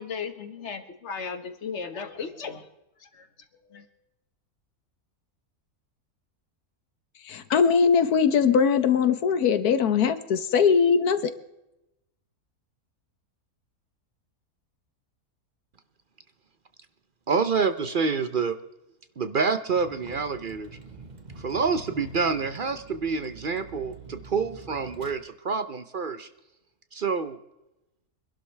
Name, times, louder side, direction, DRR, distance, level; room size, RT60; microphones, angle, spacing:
voice 1, 0.0-2.7 3.0-3.3 3.6-3.9, left 5 dB, 50° left, 8 dB, 1.7 m, -36 dB
voice 2, 7.2-11.3, left 6 dB, 85° left, 12 dB, 1.5 m, -21 dB
voice 3, 17.3-18.6 19.2-20.7 21.4-26.3 26.9-27.4, right 5 dB, 50° right, 10 dB, 0.6 m, -27 dB
Vehicle, 19.7-25.1, right 3 dB, 30° right, 1.3 m, -45 dB
25.0 x 12.0 x 3.3 m, 0.92 s
omnidirectional pair, 1.6 m